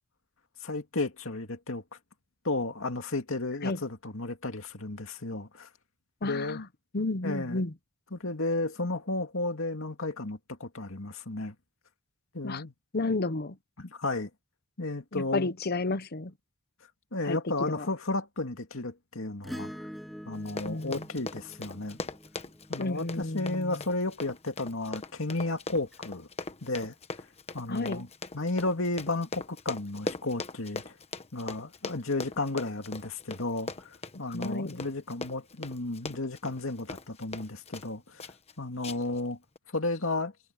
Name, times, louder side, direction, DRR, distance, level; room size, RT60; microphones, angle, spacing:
voice 1, 0.6-1.8 2.4-5.7 6.2-6.6 7.2-7.6 8.1-11.6 12.3-12.7 13.8-14.3 14.8-15.5 17.1-19.7 20.3-22.0 22.7-26.3 26.6-26.9 27.5-28.1 28.3-30.9 31.3-38.2 38.6-39.4 39.7-40.3, left 2 dB, 65° left, 2.5 m, -33 dB
voice 2, 6.2-6.7 6.9-7.7 12.4-12.6 12.9-13.6 15.1-16.3 17.2-17.9 20.6-21.1 22.8-23.8 27.7-28.1 34.1-34.8, left 2 dB, 50° left, 0.9 m, -32 dB
Acoustic guitar / Strum, 19.4-24.0 25.9-26.0, equal, ahead, 7.7 m, -45 dB
Run, 20.3-37.9 38.2-38.5 38.8-39.2 39.6-39.7, left 3 dB, 30° left, 1.2 m, -40 dB
head